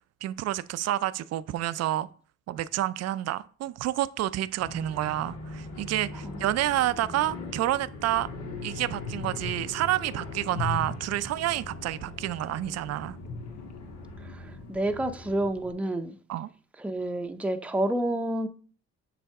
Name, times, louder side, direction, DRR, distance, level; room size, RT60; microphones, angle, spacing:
voice 1, 0.2-2.1 2.5-8.3 8.6-13.2 16.3-16.5, right 14 dB, 55° right, 0.4 m, -29 dB
sound 1, 4.6-15.5, left 2 dB, 90° left, 2.5 m, -42 dB
sound 2, 6.8-15.7, left 4 dB, 60° left, 0.8 m, -41 dB
voice 2, 14.2-16.2 16.8-18.5, right 1 dB, 5° right, 0.6 m, -29 dB
7.0 x 3.3 x 4.7 m
cardioid pair, 90°, 30 cm